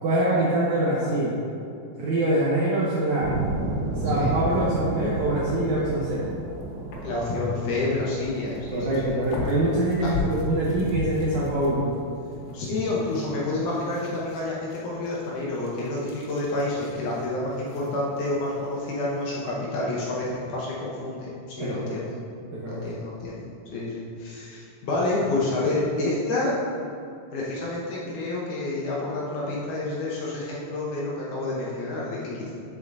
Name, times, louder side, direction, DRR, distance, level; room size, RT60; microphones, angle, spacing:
voice 1, 0.0-1.4 2.0-3.3 4.0-6.3 8.7-11.8 21.6-22.0 22.5-22.8, right 1 dB, 70° right, -6 dB, 1.8 m, -24 dB
sound 1, 3.2-14.0, right 2 dB, 90° right, 2.7 m, -34 dB
voice 2, 4.1-4.4 7.0-8.9 10.0-10.1 12.5-21.3 21.6-22.2 22.7-23.4 23.7-26.5 27.3-32.5, left 2 dB, 70° left, -5 dB, 2.1 m, -28 dB
sound 2, 4.2-19.5, left 3 dB, 85° left, 3.0 m, -39 dB
7.7 x 7.3 x 2.6 m, 2.6 s
omnidirectional pair, 4.3 m